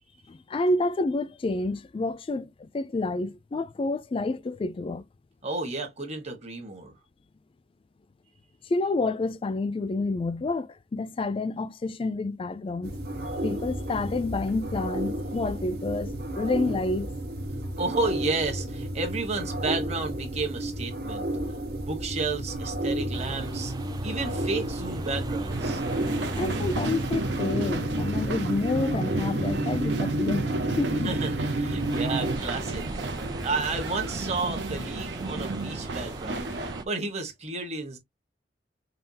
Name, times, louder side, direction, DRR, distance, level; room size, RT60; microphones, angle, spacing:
voice 1, 0.3-5.0 8.7-13.0 13.4-17.1 26.4-30.5 30.8-31.2, left 2 dB, 30° left, 0.3 m, -29 dB
voice 2, 5.4-6.9 17.8-21.2 21.8-23.7 24.0-25.8 31.0-32.9 33.4-36.5 36.8-38.0, right 3 dB, 40° right, 1.4 m, -32 dB
sound 1, 12.8-32.4, right 1 dB, 60° right, 1.0 m, -31 dB
sound 2, 23.1-36.9, right 2 dB, 25° right, 0.5 m, -41 dB
sound 3, 25.5-36.8, right 3 dB, 85° right, 0.9 m, -34 dB
5.6 x 2.3 x 2.8 m
head